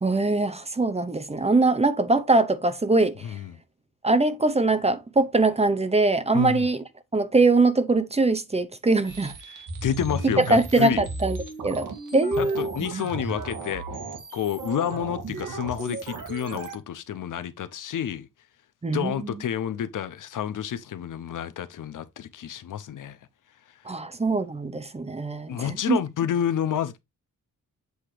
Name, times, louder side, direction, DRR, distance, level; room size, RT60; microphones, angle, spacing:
voice 1, 0.0-3.3 4.0-6.8 7.1-9.3 10.5-11.4 11.6-11.9 12.1-12.7 18.8-19.4 23.9-26.0, right 3 dB, 20° right, 0.7 m, -22 dB
voice 2, 3.2-3.6 6.3-6.7 9.5-11.1 12.4-13.8 14.3-18.3 18.9-23.2 25.5-27.0, left 9 dB, 65° left, 0.7 m, -29 dB
sound 1, 9.1-16.8, right 3 dB, 65° right, 1.9 m, -35 dB
8.0 x 2.8 x 4.9 m
wide cardioid pair, 120°, 34 cm